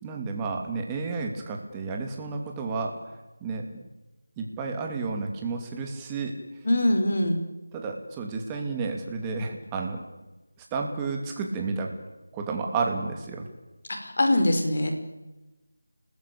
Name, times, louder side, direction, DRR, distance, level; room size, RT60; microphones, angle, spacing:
voice 1, 0.0-3.0 3.4-3.9 4.4-6.4 7.7-10.0 10.7-11.9 12.3-13.5, right 4 dB, 10° right, 2 dB, 2.9 m, -31 dB
voice 2, 6.6-7.4 14.0-14.9, left 1 dB, 50° left, 5 dB, 5.2 m, -22 dB
30.0 x 20.0 x 8.8 m, 1.1 s
figure-of-eight pair, 170°, 0 cm